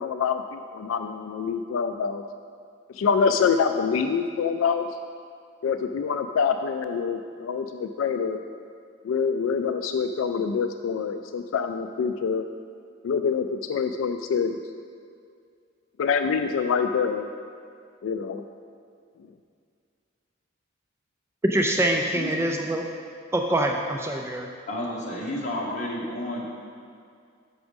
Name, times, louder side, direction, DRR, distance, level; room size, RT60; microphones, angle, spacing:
voice 1, 0.0-2.2 2.9-4.9 5.6-8.4 9.0-12.4 13.0-14.6 16.0-17.3 18.0-18.4, left 6 dB, 75° left, 7 dB, 0.3 m, -26 dB
voice 2, 21.4-22.8 23.3-24.5, right 1 dB, 15° right, 2 dB, 0.3 m, -24 dB
voice 3, 24.7-26.4, left 1 dB, 35° left, -4 dB, 1.4 m, -31 dB
6.2 x 6.0 x 5.2 m, 2.3 s
head